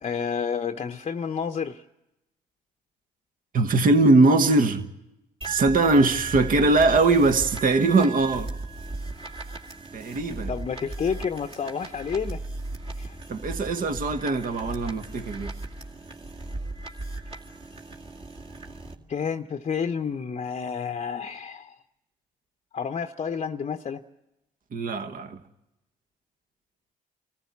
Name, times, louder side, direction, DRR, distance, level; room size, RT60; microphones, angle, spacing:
voice 1, 0.0-1.8 10.5-12.4 13.0-13.2 19.1-21.7 22.7-24.0, left 6 dB, 40° left, 0.7 m, -30 dB
voice 2, 3.5-4.8 5.5-8.5 9.9-10.5 13.3-15.5 24.7-25.4, right 3 dB, 55° right, 1.3 m, -21 dB
sound 1, 5.4-18.9, right 3 dB, 35° right, 2.2 m, -36 dB
25.0 x 14.5 x 8.2 m
supercardioid pair, 60°, 17 cm